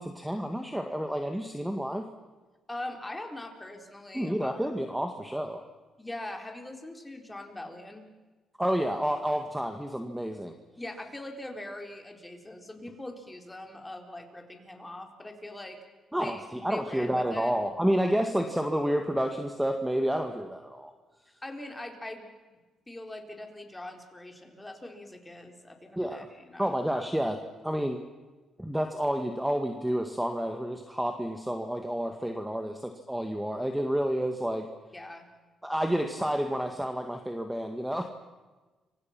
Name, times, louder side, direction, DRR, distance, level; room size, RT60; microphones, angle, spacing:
voice 1, 0.0-2.1 4.1-5.6 8.6-10.5 16.1-20.9 26.0-26.3 26.6-27.4 27.6-28.0 28.6-34.7 35.6-38.0, equal, 5° right, 5 dB, 1.9 m, -30 dB
voice 2, 2.7-4.7 6.0-8.1 10.8-15.8 16.2-16.4 16.7-17.5 21.4-22.3 22.9-26.7 34.9-35.3, left 1 dB, 15° left, 3 dB, 4.3 m, -42 dB
29.5 x 25.0 x 6.0 m, 1.2 s
cardioid pair, 90°, 0 cm